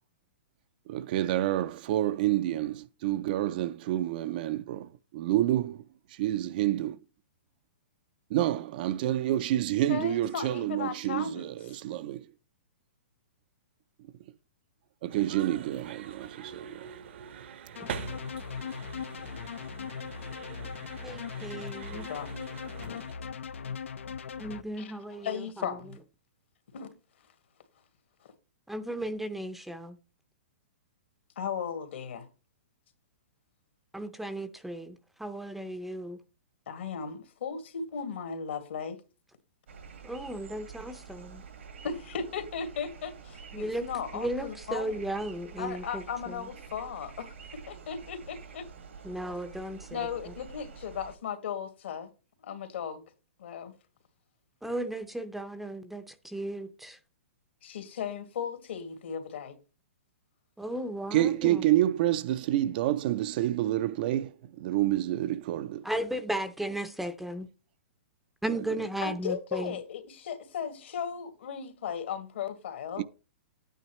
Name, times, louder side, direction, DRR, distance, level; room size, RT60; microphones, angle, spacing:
voice 1, 0.9-5.8 6.2-6.9 8.3-12.3 15.0-16.9 61.1-65.9 73.0-73.1, right 13 dB, 45° right, 0.5 m, -28 dB
voice 2, 9.9-11.5 21.9-22.4 22.7-23.0 24.8-26.0 26.7-26.9 31.4-32.3 36.7-39.0 41.8-45.0 45.6-48.6 49.9-52.1 52.4-53.0 53.4-53.7 57.6-59.5 69.0-73.0, left 7 dB, 70° left, 2.0 m, -36 dB
sound 1, 15.1-23.1, right 7 dB, 65° right, 1.0 m, -44 dB
sound 2, 17.8-24.6, left 6 dB, 85° left, 0.7 m, -39 dB
voice 3, 21.0-22.1 24.4-25.8 28.7-30.0 33.9-36.2 40.0-41.4 43.5-43.9 44.1-46.5 49.0-50.3 54.6-57.0 60.6-61.6 65.8-67.5 68.4-69.8, right 1 dB, 5° right, 0.6 m, -35 dB
sound 3, 39.7-51.2, right 6 dB, 80° right, 1.8 m, -47 dB
10.5 x 9.1 x 3.0 m
hypercardioid pair, 145°, 7 cm